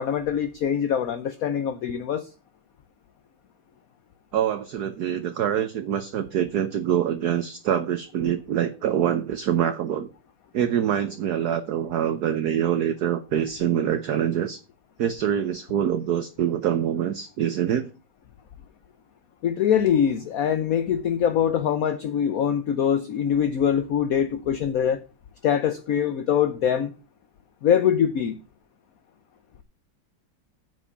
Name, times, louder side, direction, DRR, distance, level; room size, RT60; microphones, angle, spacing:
voice 1, 0.0-2.3 19.4-25.0 25.4-26.9 27.6-28.4, left 8 dB, 60° left, 1.0 m, -23 dB
voice 2, 4.3-10.1 10.5-14.6 15.0-17.9, right 9 dB, 60° right, 1.2 m, -25 dB
9.4 x 6.3 x 6.9 m
omnidirectional pair, 2.2 m